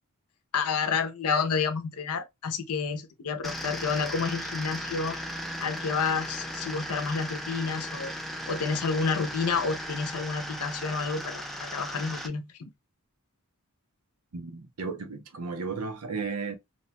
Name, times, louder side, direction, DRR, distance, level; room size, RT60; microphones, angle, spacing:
voice 1, 0.5-5.2 5.6-8.1 8.5-12.7, left 5 dB, 80° left, 0.6 m, -29 dB
sound 1, 3.4-12.3, equal, ahead, 0.3 m, -37 dB
voice 2, 14.3-16.5, right 4 dB, 85° right, 0.7 m, -34 dB
2.7 x 2.1 x 2.8 m
head